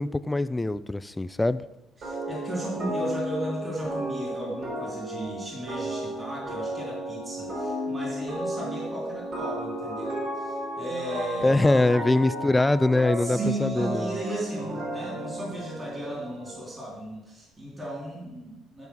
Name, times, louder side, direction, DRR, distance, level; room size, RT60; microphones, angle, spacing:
voice 1, 0.0-1.6 11.4-14.1, left 2 dB, 10° left, 13 dB, 0.4 m, -23 dB
voice 2, 2.0-11.7 13.2-18.9, right 1 dB, 20° right, -4 dB, 3.3 m, -35 dB
sound 1, 2.0-16.6, right 1 dB, 60° right, 3.9 m, -33 dB
12.0 x 5.3 x 4.7 m, 0.96 s
cardioid pair, 95°, 0 cm